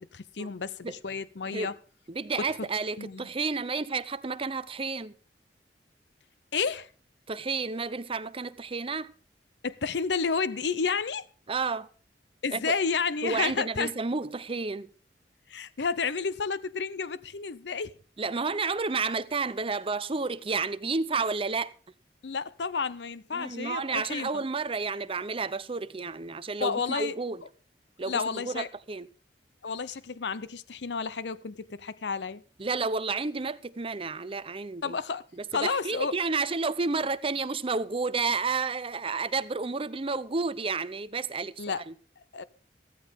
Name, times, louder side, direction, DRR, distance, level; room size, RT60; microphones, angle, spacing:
voice 1, 0.0-1.7 2.4-2.5 3.0-3.3 6.5-6.9 9.6-11.2 12.4-13.9 15.5-17.9 22.2-24.4 26.6-27.1 28.0-28.7 29.6-32.4 34.8-35.2 35.5-36.1 41.6-41.8 42.3-42.4, left 5 dB, 75° left, 0.7 m, -31 dB
voice 2, 2.1-5.1 7.3-9.1 11.5-11.9 12.5-12.7 13.2-14.9 18.2-21.7 23.3-27.4 28.0-29.1 32.6-35.0 35.6-41.9, right 4 dB, 30° right, 0.7 m, -31 dB
15.0 x 14.0 x 3.6 m
head